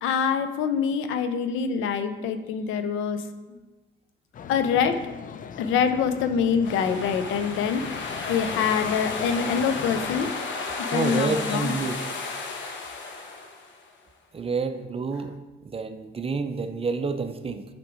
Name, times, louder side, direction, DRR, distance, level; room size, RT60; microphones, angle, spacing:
voice 1, 0.0-3.6 4.5-5.0 5.6-10.3 10.9-11.8, left 7 dB, 90° left, 9 dB, 0.6 m, -25 dB
sound 1, 4.3-10.3, left 7 dB, 45° left, 0.4 m, -39 dB
sound 2, 6.6-13.9, left 4 dB, 70° left, 1.0 m, -33 dB
voice 2, 10.9-12.0 14.3-15.3 15.6-17.6, right 4 dB, 30° right, 8 dB, 0.6 m, -28 dB
7.7 x 3.7 x 4.9 m, 1.2 s
cardioid pair, 90°, 20 cm